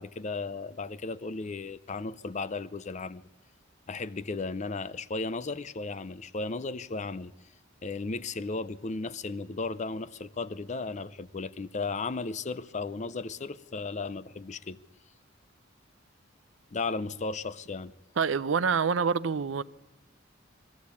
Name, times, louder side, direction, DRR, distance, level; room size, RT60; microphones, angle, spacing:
voice 1, 0.0-3.2 3.9-7.3 7.8-14.8 16.7-17.9, left 3 dB, 35° left, 0.6 m, -35 dB
voice 2, 18.2-19.6, right 6 dB, 75° right, 0.6 m, -26 dB
22.0 x 14.0 x 8.4 m
head